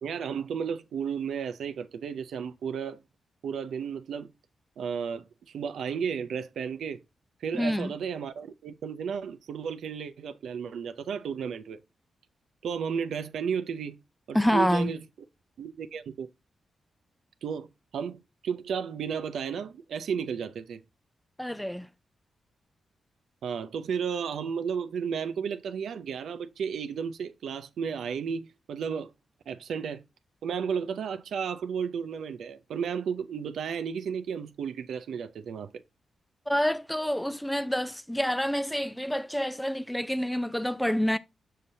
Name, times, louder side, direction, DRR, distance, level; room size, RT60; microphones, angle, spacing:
voice 1, 0.0-3.0 3.4-4.3 4.8-7.0 7.4-11.8 12.6-14.0 14.3-15.0 15.6-16.3 17.4-17.7 17.9-20.8 23.4-29.1 29.5-30.0 30.4-35.7, right 7 dB, 85° right, 0.5 m, -33 dB
voice 2, 7.5-7.9 14.3-14.9 21.4-21.9 36.5-41.2, equal, 5° left, 0.4 m, -27 dB
6.5 x 5.7 x 2.7 m
cardioid pair, 70°, 0 cm